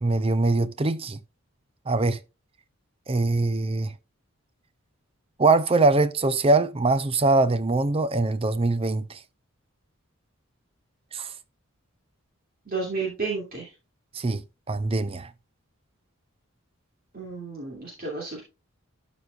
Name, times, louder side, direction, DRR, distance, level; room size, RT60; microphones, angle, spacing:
voice 1, 0.0-1.2 1.9-2.2 3.1-3.9 5.4-9.2 11.1-11.3 14.1-14.4 14.7-15.3, right 3 dB, 25° right, 0.5 m, -22 dB
voice 2, 12.7-13.7 17.1-18.4, right 4 dB, 45° right, 2.6 m, -31 dB
12.5 x 5.1 x 2.4 m
head